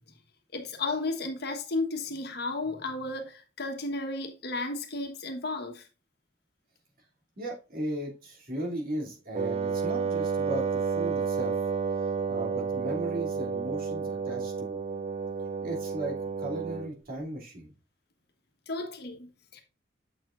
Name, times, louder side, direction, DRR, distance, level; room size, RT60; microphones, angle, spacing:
voice 1, 0.5-5.8 18.7-19.6, left 2 dB, 60° left, 1.3 m, -33 dB
voice 2, 7.4-11.6 12.3-14.8 15.6-17.7, right 1 dB, 50° right, 2.7 m, -36 dB
Wind instrument woodwind instrument, 9.3-17.0, right 6 dB, 35° right, 0.4 m, -31 dB
7.6 x 6.8 x 2.5 m
head